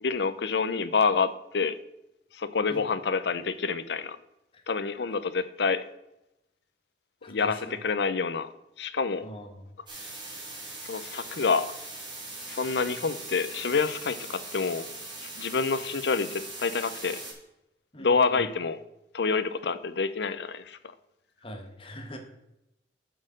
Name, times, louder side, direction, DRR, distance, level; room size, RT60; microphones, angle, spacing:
voice 1, 0.0-1.8 2.3-4.2 4.7-5.8 7.2-8.5 8.8-9.3 10.8-11.7 12.5-14.9 15.2-17.2 18.0-18.8 19.1-20.8, left 4 dB, 70° left, 13 dB, 0.6 m, -27 dB
voice 2, 7.2-7.8 9.2-9.7 17.9-18.5 21.4-22.2, equal, 30° left, 4 dB, 1.4 m, -43 dB
sound 1, 9.9-17.3, right 2 dB, 25° right, 3.2 m, -41 dB
7.8 x 6.5 x 6.4 m, 0.88 s
head